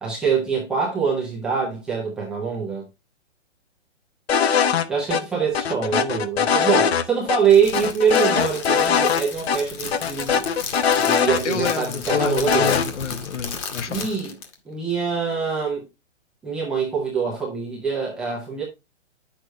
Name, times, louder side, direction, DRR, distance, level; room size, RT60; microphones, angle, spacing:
voice 1, 0.0-2.8 4.9-10.4 11.0-12.7 13.9-14.3 14.7-15.8 16.4-18.6, right 6 dB, ahead, 0.5 m, -24 dB
sound 1, 4.3-4.8 5.1-5.2 5.5-7.0 7.3-7.4 7.7-9.2 9.5-9.6 9.9-11.7 12.1-12.9, left 7 dB, 60° left, 1.1 m, -21 dB
Crackle, 7.4-14.5, left 5 dB, 25° left, 1.4 m, -34 dB
voice 2, 11.4-14.1, left 7 dB, 75° left, 1.3 m, -28 dB
9.0 x 6.4 x 3.2 m
hypercardioid pair, 160°, 35 cm